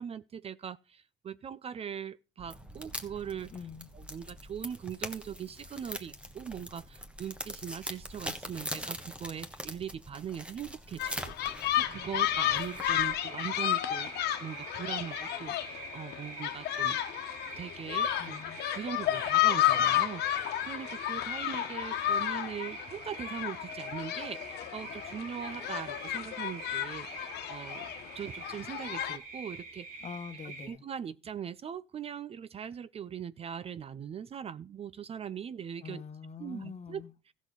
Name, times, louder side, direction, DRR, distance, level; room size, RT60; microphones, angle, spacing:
voice 1, 0.0-3.5 3.9-14.1 14.4-17.0 17.6-18.4 18.7-27.1 27.5-30.0 30.6-36.0 36.4-37.0 37.3-37.4, right 8 dB, 35° right, 0.5 m, -41 dB
sound 1, 2.4-13.2, equal, 5° right, 1.3 m, -43 dB
voice 2, 3.5-3.9 18.2-18.6 30.0-30.8 35.8-37.1, left 6 dB, 40° left, 1.3 m, -44 dB
sound 2, 11.0-29.2, left 12 dB, 75° left, 1.2 m, -32 dB
sound 3, 11.9-30.7, right 3 dB, 55° right, 3.3 m, -46 dB
14.5 x 6.4 x 5.2 m
cardioid pair, 110°, 17 cm